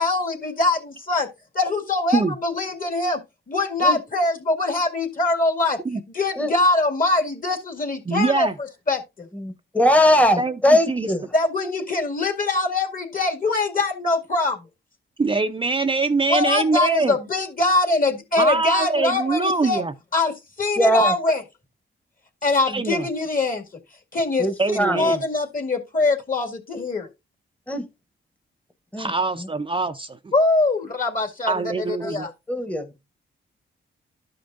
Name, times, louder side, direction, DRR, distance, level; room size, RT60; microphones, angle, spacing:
voice 1, 0.0-1.3 1.6-5.8 6.1-8.5 8.9-9.3 11.3-14.6 16.3-19.8 20.1-21.4 22.4-23.6 24.1-24.5 24.9-27.1 30.3-32.3, left 2 dB, 40° left, 2.0 m, -23 dB
voice 2, 8.1-8.5 10.4-10.5 10.9-11.1 15.2-17.1 18.4-19.9 22.7-23.1 24.6-25.2 29.0-30.3 31.5-32.3, right 3 dB, 25° right, 0.5 m, -23 dB
voice 3, 9.3-11.3 20.8-21.1 24.4-25.1 27.7-27.8 28.9-29.1 29.4-29.5 32.0-32.1 32.5-32.9, equal, 5° left, 1.0 m, -20 dB
13.0 x 5.1 x 2.5 m
cardioid pair, 80°, 21 cm